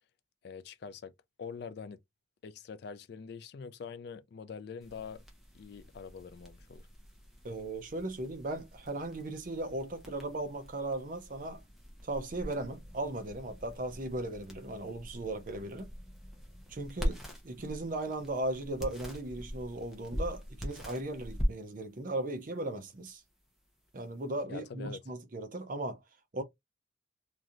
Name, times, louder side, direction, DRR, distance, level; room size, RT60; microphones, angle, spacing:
voice 1, 0.4-1.1 1.4-2.0 2.4-5.2 5.5-6.9 24.5-25.0, left 5 dB, 55° left, 0.3 m, -44 dB
sound 1, 4.8-24.4, equal, ahead, 0.7 m, -42 dB
voice 2, 7.4-11.6 12.0-15.9 16.7-23.2 23.9-26.0 26.3-26.4, right 2 dB, 40° right, 0.5 m, -37 dB
3.0 x 2.6 x 2.5 m
head